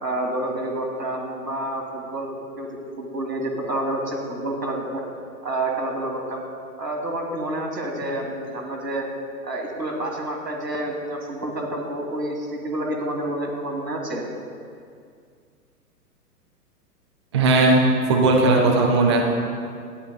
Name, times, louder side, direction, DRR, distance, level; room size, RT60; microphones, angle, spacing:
voice 1, 0.0-5.0 5.4-6.4 6.8-9.0 9.4-14.2, right 1 dB, 85° right, 1 dB, 1.7 m, -29 dB
voice 2, 17.3-17.8 18.1-19.2, right 2 dB, 20° right, 0 dB, 0.5 m, -17 dB
13.0 x 9.5 x 2.2 m, 2.2 s
figure-of-eight pair, 120°, 48 cm